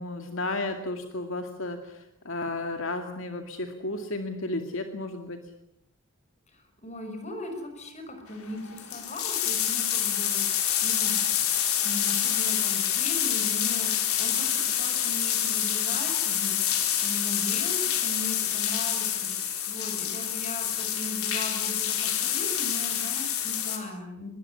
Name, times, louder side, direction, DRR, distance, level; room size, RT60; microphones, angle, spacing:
voice 1, 0.0-5.4, left 2 dB, 65° left, 5 dB, 2.2 m, -33 dB
voice 2, 6.5-11.3 11.8-24.3, left 1 dB, 30° left, 6 dB, 6.4 m, -39 dB
sound 1, 8.4-8.5 8.7-23.8, left 10 dB, 90° left, 4.7 m, -27 dB
24.5 x 21.5 x 10.0 m, 0.82 s
head